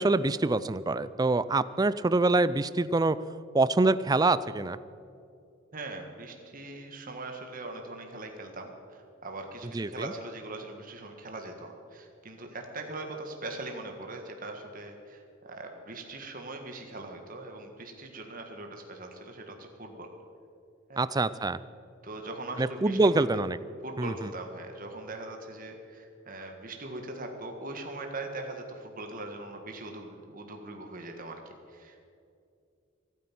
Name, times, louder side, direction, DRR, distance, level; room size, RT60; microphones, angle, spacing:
voice 1, 0.0-3.2 3.5-4.8 9.7-10.1 21.0-21.6 22.6-23.6 24.0-24.3, right 2 dB, 20° right, 16 dB, 0.4 m, -25 dB
voice 2, 5.7-20.1 20.9-21.0 22.0-23.4 23.8-31.4 31.7-32.0, right 2 dB, 40° right, 3 dB, 1.6 m, -41 dB
24.5 x 9.3 x 6.0 m, 2.5 s
head